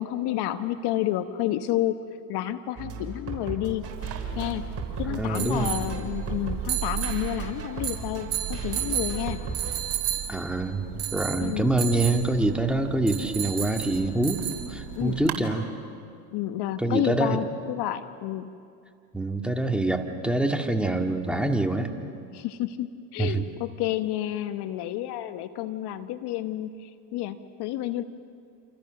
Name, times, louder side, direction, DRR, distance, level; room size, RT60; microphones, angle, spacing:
voice 1, 0.0-2.0 2.3-3.8 4.4-4.6 5.0-9.4 11.4-11.7 14.9-15.4 16.3-18.5 22.3-28.0, left 13 dB, 55° left, 10 dB, 1.1 m, -30 dB
sound 1, 2.8-9.8, right 3 dB, 30° right, 6.6 m, -36 dB
sound 2, 3.8-15.4, right 12 dB, 55° right, 4.5 m, -33 dB
voice 2, 5.1-5.8 10.3-14.4 14.7-15.7 16.8-17.5 19.1-21.9 23.2-23.4, right 2 dB, ahead, 3 dB, 2.2 m, -25 dB
29.0 x 28.5 x 6.6 m, 2.4 s
hypercardioid pair, 95°, 48 cm